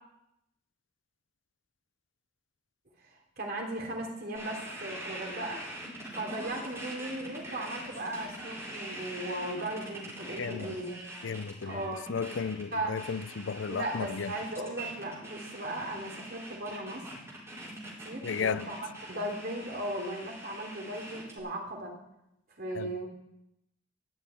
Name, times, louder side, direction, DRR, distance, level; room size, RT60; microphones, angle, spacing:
voice 1, 3.4-5.6 6.1-10.9 11.6-12.1 12.7-13.0 13.7-17.2 17.8-21.9 22.6-23.1, right 1 dB, 55° right, 3.2 m, -37 dB
sound 1, 4.4-21.4, right 1 dB, 15° right, 4.8 m, -43 dB
voice 2, 10.4-10.8 11.2-11.8 12.1-14.3 18.2-18.7 22.8-22.9, left 5 dB, 85° left, 0.5 m, -34 dB
12.5 x 7.6 x 9.1 m
head